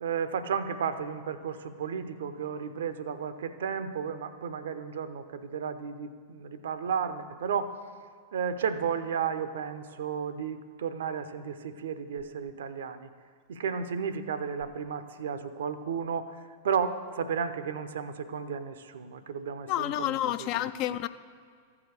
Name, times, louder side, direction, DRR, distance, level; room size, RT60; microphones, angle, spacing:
voice 1, 0.0-7.8 8.3-13.1 13.5-16.4 16.6-20.7, right 6 dB, 65° right, 12 dB, 0.5 m, -33 dB
voice 2, 19.7-21.1, left 13 dB, 40° left, 13 dB, 0.3 m, -29 dB
14.0 x 4.9 x 6.7 m, 2.1 s
figure-of-eight pair, 95°, 0 cm